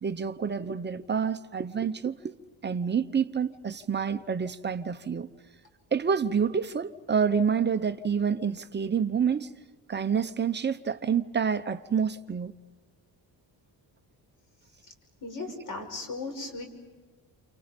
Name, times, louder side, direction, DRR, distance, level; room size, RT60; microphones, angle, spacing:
voice 1, 0.0-2.3 2.6-5.3 5.9-9.5 9.9-12.5, right 6 dB, 25° right, 0.9 m, -28 dB
voice 2, 15.2-16.6, left 3 dB, 45° left, 6.0 m, -36 dB
30.0 x 28.5 x 5.3 m
cardioid pair, 175°, 43 cm